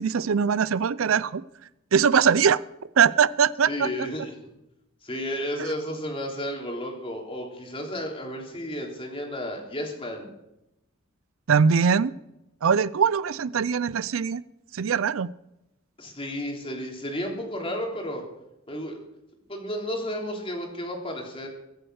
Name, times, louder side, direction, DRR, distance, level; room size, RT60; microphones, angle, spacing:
voice 1, 0.0-1.4 1.9-2.6 3.0-3.9 11.5-12.1 12.6-14.4 14.7-15.3, right 6 dB, 70° right, 18 dB, 0.5 m, -21 dB
voice 2, 3.7-4.5 5.0-10.3 16.0-18.2 18.7-19.0 19.5-21.5, equal, 25° left, 1 dB, 3.3 m, -32 dB
23.0 x 7.8 x 6.4 m, 0.90 s
head